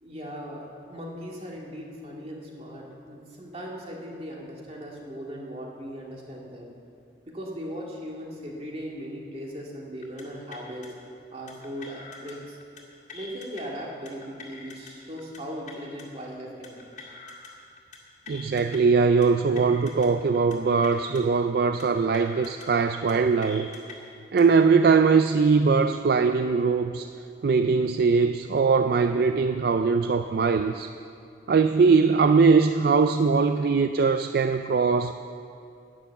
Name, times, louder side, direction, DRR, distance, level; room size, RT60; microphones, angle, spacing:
voice 1, 0.0-6.7 7.3-10.9 11.3-12.6 13.1-16.9 20.9-21.0, equal, 35° right, -2 dB, 2.0 m, -38 dB
sound 1, 10.0-10.2 10.5-10.9 11.5-12.3 12.6-12.8 13.1-13.6 14.1-14.9 15.2-15.4 15.7-16.0 16.6-17.5 17.8-18.0 18.3-18.8 19.2-20.1 20.3-20.6 20.8-21.2 21.8-22.7 22.9-23.1 23.4-23.9 24.4-24.6, left 4 dB, 45° left, 2.0 m, -44 dB
voice 2, 18.3-23.7 24.3-27.1 27.4-30.9 31.5-35.1, right 5 dB, 60° right, 8 dB, 0.4 m, -21 dB
12.0 x 9.4 x 7.1 m, 2.5 s
head